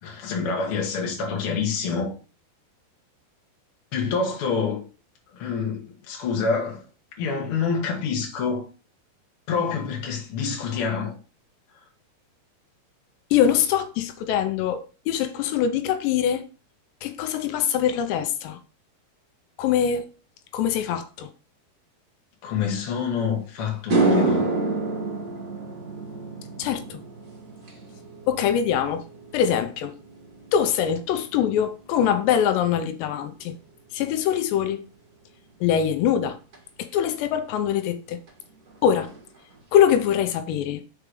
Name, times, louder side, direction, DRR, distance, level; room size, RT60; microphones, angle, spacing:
voice 1, 0.0-2.1 3.9-4.8 5.3-6.8 7.2-8.7 9.5-11.1 22.4-24.5, left 5 dB, 45° left, 1.9 m, -27 dB
voice 2, 13.3-16.4 17.0-18.6 19.6-20.1 20.5-21.3 26.6-27.0 28.3-29.0 29.3-29.9 30.5-33.6 33.9-34.9 35.6-36.4 36.8-38.2 38.8-39.1 39.7-40.8, left 9 dB, 85° left, 2.8 m, -23 dB
sound 1, 23.2-23.3 23.7-32.2 32.5-32.9 36.5-36.6 38.3-38.4 38.7-38.8 39.1-39.6, right 3 dB, 50° right, 1.1 m, -29 dB
6.4 x 4.7 x 4.9 m
omnidirectional pair, 5.0 m